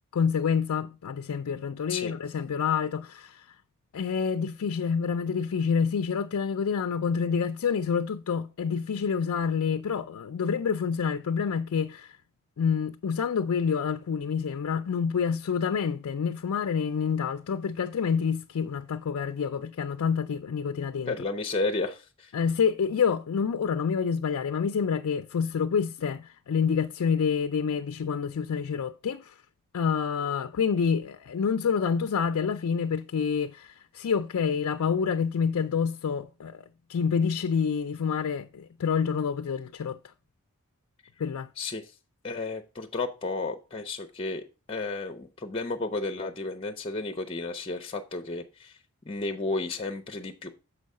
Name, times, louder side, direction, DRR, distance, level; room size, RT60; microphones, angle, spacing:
voice 1, 0.1-3.5 3.9-12.2 12.6-21.1 22.3-29.3 29.7-36.6 36.9-40.0 41.2-41.5, left 6 dB, 75° left, 0.4 m, -28 dB
voice 2, 21.1-22.3 41.6-41.9 42.2-48.8 49.0-50.5, left 3 dB, 25° left, 0.6 m, -32 dB
6.8 x 4.7 x 5.3 m
head